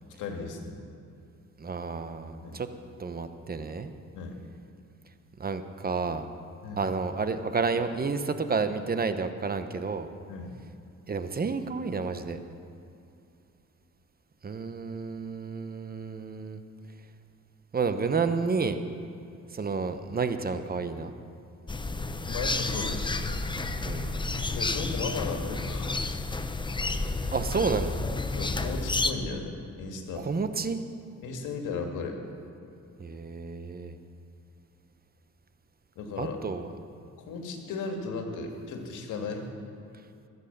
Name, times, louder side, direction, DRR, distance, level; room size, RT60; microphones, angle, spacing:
voice 1, 0.2-0.8 2.4-2.6 4.1-4.4 6.6-6.8 10.3-10.5 22.3-23.2 24.5-26.0 28.4-30.3 31.2-32.2 36.0-36.4 37.2-39.5, left 4 dB, 85° left, 3 dB, 2.0 m, -35 dB
voice 2, 1.6-2.7 3.0-3.9 5.4-6.3 6.8-10.1 11.1-12.4 14.4-16.6 17.7-18.8 19.5-21.1 23.8-24.1 27.3-28.0 30.2-30.8 33.0-33.9 36.2-36.7, right 4 dB, 30° right, 9 dB, 1.0 m, -30 dB
sound 1, 21.7-29.1, left 3 dB, 15° left, 0.8 m, -31 dB
21.0 x 8.3 x 6.8 m, 2.6 s
cardioid pair, 90°, 30 cm